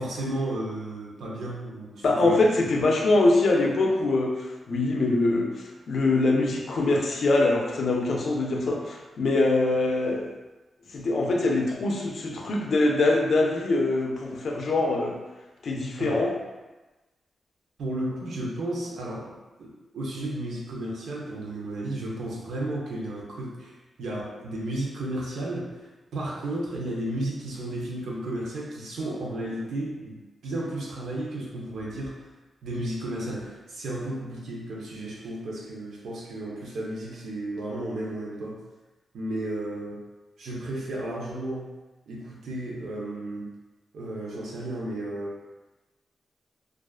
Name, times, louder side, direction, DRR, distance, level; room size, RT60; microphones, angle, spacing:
voice 1, 0.0-2.8 16.0-16.2 17.8-25.8 26.1-32.1 32.6-38.6 39.1-40.1 40.4-41.7 42.1-43.5 43.9-45.4, right 1 dB, 85° right, -4 dB, 0.6 m, -33 dB
voice 2, 2.0-4.3 4.7-5.5 5.9-10.3 10.9-15.2 15.6-16.3, left 2 dB, 65° left, 0 dB, 0.4 m, -23 dB
2.3 x 2.2 x 2.3 m, 1.1 s
cardioid pair, 90°, 0 cm